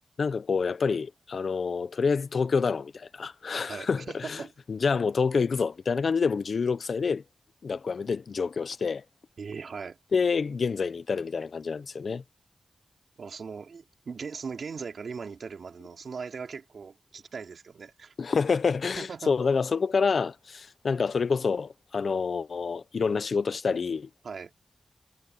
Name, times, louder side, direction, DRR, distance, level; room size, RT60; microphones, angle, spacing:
voice 1, 0.2-4.4 4.7-7.2 7.6-9.0 10.1-12.2 18.2-24.1, left 5 dB, 70° left, 1.0 m, -27 dB
voice 2, 3.7-4.5 9.4-10.0 13.2-18.1 19.0-19.3 24.2-24.5, right 5 dB, 75° right, 3.0 m, -39 dB
cardioid pair, 60°, 0 cm